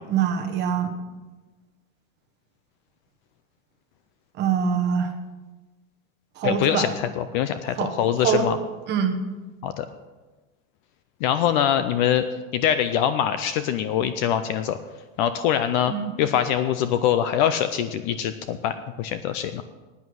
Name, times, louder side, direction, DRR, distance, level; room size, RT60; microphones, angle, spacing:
voice 1, 0.1-0.9 4.4-5.1 6.4-6.9 7.8-7.9 8.2-8.5 8.9-9.2 15.8-16.1, right 7 dB, 25° right, 5 dB, 1.2 m, -24 dB
voice 2, 6.4-8.6 9.6-9.9 11.2-12.2 12.5-14.8 15.2-19.6, left 10 dB, 40° left, 11 dB, 0.4 m, -23 dB
11.0 x 9.4 x 6.3 m, 1.2 s
supercardioid pair, 165°, 40 cm